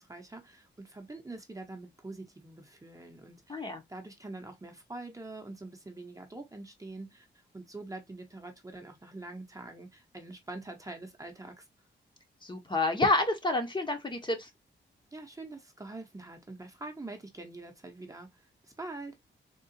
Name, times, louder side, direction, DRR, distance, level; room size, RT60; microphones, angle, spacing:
voice 1, 0.0-11.7 15.1-19.2, right 2 dB, 15° right, 0.8 m, -45 dB
voice 2, 3.5-3.8 12.4-14.5, left 2 dB, 25° left, 0.8 m, -29 dB
3.7 x 2.3 x 2.6 m
cardioid pair, 100°, 20 cm